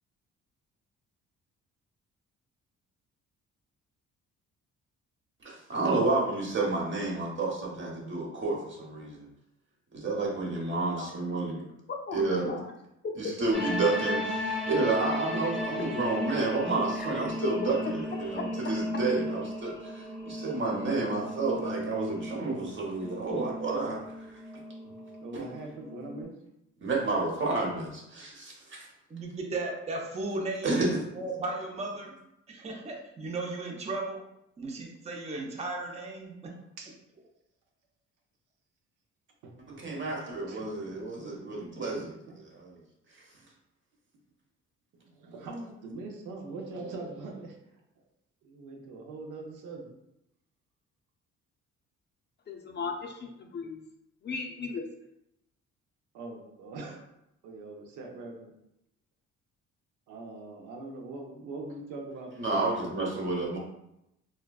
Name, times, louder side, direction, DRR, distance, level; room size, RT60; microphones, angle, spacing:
voice 1, 5.4-9.3 9.9-11.6 12.1-12.6 13.2-24.4 25.3-25.5 26.8-28.9 30.6-31.0 39.7-42.8 62.4-63.6, right 3 dB, 40° right, -2 dB, 0.9 m, -30 dB
voice 2, 11.0-11.4 11.9-12.7 13.0-13.3 17.0-17.1 17.4-17.5 18.4-18.5 52.5-53.8 54.2-54.8, left 4 dB, 35° left, 2 dB, 0.4 m, -36 dB
sound 1, 13.5-26.2, left 1 dB, ahead, 0.8 m, -36 dB
voice 3, 25.2-26.3 36.8-36.9 39.4-39.8 40.5-42.4 45.0-47.6 48.4-49.9 56.1-57.0 57.4-58.5 60.1-62.4, right 2 dB, 85° right, 1 dB, 0.6 m, -42 dB
voice 4, 29.1-30.8 31.1-32.1 32.5-34.2 34.6-36.5, right 2 dB, 20° right, 0 dB, 0.5 m, -35 dB
3.4 x 2.1 x 2.3 m, 0.83 s
cardioid pair, 90°, 30 cm